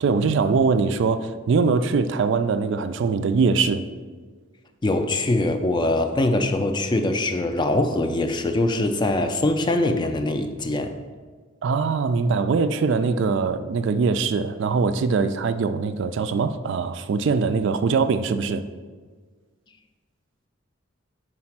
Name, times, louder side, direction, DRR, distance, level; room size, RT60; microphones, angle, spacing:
voice 1, 0.0-3.8 11.6-18.6, right 4 dB, 60° right, 11 dB, 0.3 m, -22 dB
voice 2, 4.8-11.0, left 2 dB, 20° left, 8 dB, 0.4 m, -23 dB
4.8 x 4.2 x 5.9 m, 1.5 s
head